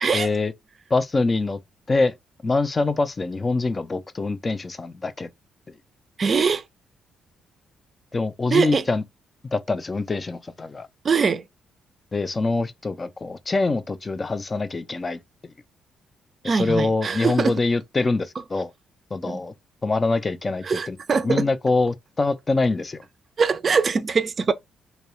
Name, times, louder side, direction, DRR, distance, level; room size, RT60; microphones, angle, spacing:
voice 1, 0.1-0.5 0.9-1.6 1.9-2.1 2.4-5.3 8.1-9.0 9.5-10.9 12.1-15.2 16.4-18.7 19.1-19.5 19.8-21.0 21.2-23.0, left 3 dB, 30° left, 0.3 m, -24 dB
voice 2, 6.2-6.6 8.5-8.8 11.0-11.4 16.4-17.6 19.2-19.4 20.6-21.5 23.4-24.5, right 5 dB, 45° right, 0.4 m, -22 dB
2.2 x 2.0 x 2.9 m
supercardioid pair, 60°, 0 cm